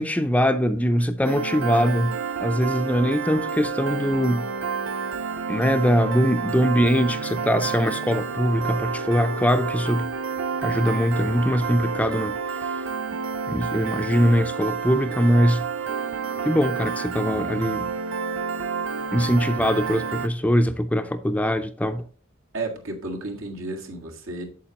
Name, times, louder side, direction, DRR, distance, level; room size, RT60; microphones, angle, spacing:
voice 1, 0.0-2.1 2.4-4.5 5.5-10.1 10.6-12.4 13.5-15.6 16.4-17.9 19.1-22.0, equal, 5° left, 0.4 m, -22 dB
Piano, 1.2-20.3, right 5 dB, 65° right, 0.6 m, -29 dB
voice 2, 22.5-24.4, right 2 dB, 85° right, 1.8 m, -32 dB
8.5 x 7.3 x 2.9 m
head